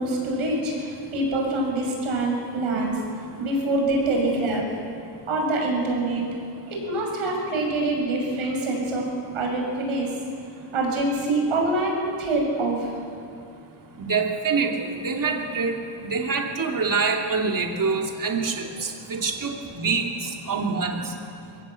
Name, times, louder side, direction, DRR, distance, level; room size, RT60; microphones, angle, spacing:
voice 1, 0.0-4.7 5.3-6.2 6.7-9.0 9.3-10.1 10.7-13.0, right 2 dB, 75° right, 0 dB, 6.6 m, -25 dB
voice 2, 14.0-14.7 15.0-15.8 16.0-20.1 20.5-21.0, right 4 dB, 40° right, 1 dB, 2.9 m, -25 dB
22.5 x 17.5 x 7.9 m, 2.4 s
cardioid pair, 95°, 50 cm